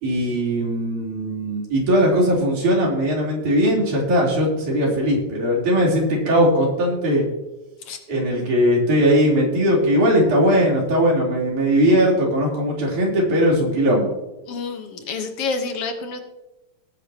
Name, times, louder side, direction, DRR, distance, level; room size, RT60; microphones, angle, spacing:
voice 1, 0.0-7.3 8.1-14.1, equal, 80° right, -3 dB, 5.2 m, -19 dB
voice 2, 14.5-16.2, left 4 dB, 60° left, 6 dB, 1.9 m, -28 dB
18.5 x 10.0 x 2.9 m, 0.99 s
omnidirectional pair, 3.4 m